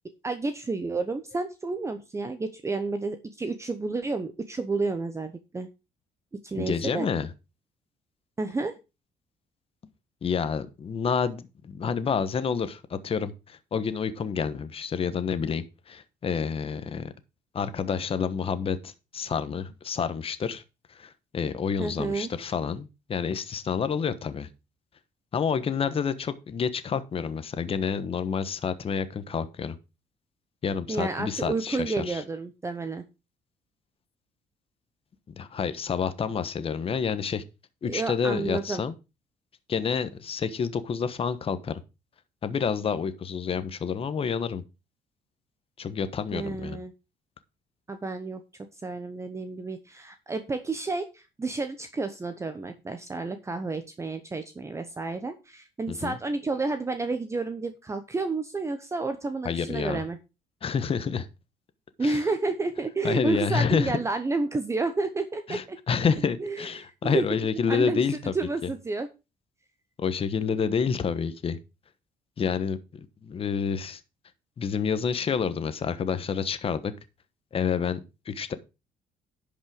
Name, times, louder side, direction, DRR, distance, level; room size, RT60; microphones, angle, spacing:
voice 1, 0.2-5.7 6.4-7.1 8.4-8.8 21.8-22.3 30.9-33.0 37.8-38.8 46.3-46.9 47.9-48.4 48.8-60.2 62.0-65.8 66.4-67.2 67.7-68.0 68.3-69.1, right 3 dB, 20° right, 0.9 m, -30 dB
voice 2, 6.5-7.3 10.2-17.1 17.5-20.6 20.9-24.5 25.3-29.8 30.6-32.2 35.4-37.4 37.8-38.9 39.7-41.8 42.4-44.6 45.8-46.8 55.9-56.2 59.4-60.0 60.6-61.3 62.0-62.2 63.0-64.0 65.5-68.3 70.0-71.6 72.4-72.8 73.2-74.0 74.6-76.9 77.5-78.5, left 6 dB, 40° left, 1.2 m, -28 dB
11.0 x 5.5 x 5.0 m
cardioid pair, 115°, 15 cm